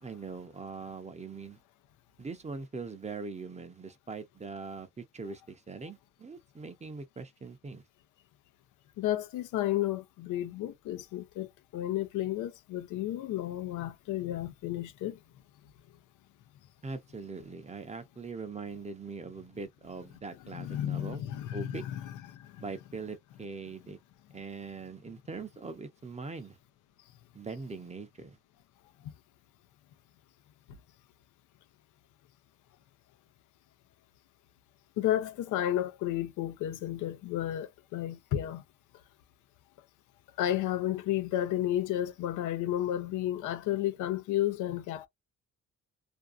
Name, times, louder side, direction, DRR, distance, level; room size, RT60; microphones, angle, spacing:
voice 1, 0.0-1.6 2.2-7.8 16.8-21.2 21.5-21.8 22.6-24.0 24.3-26.6 27.3-28.4, right 4 dB, 20° right, 0.6 m, -41 dB
voice 2, 9.0-11.5 11.7-15.1 20.5-22.1 35.0-38.6 40.4-45.1, left 12 dB, 85° left, 0.6 m, -32 dB
2.6 x 2.3 x 2.4 m
cardioid pair, 90°, 30 cm